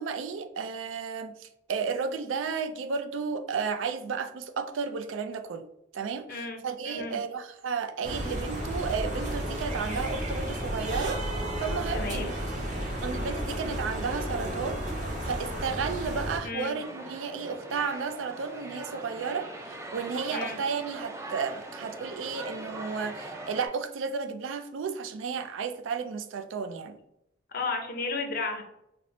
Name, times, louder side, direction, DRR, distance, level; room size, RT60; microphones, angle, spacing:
voice 1, 0.0-5.6 5.9-12.3 13.0-14.8 15.2-27.0, right 5 dB, 85° right, 9 dB, 0.4 m, -33 dB
voice 2, 6.3-7.2 11.9-12.3 16.4-16.8 20.3-20.6 27.5-28.6, left 3 dB, 50° left, 5 dB, 0.6 m, -33 dB
sound 1, 8.0-16.4, right 1 dB, 40° right, 0.8 m, -32 dB
sound 2, 16.7-23.7, right 2 dB, 15° right, 0.3 m, -41 dB
4.3 x 2.0 x 2.6 m, 0.81 s
head